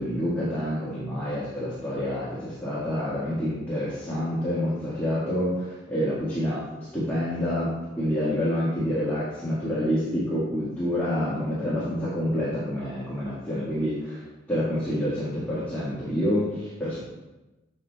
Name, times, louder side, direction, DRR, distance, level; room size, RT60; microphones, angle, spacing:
voice 1, 0.0-14.2 14.5-17.0, equal, 10° left, -10 dB, 1.5 m, -28 dB
7.3 x 7.2 x 2.2 m, 1.1 s
head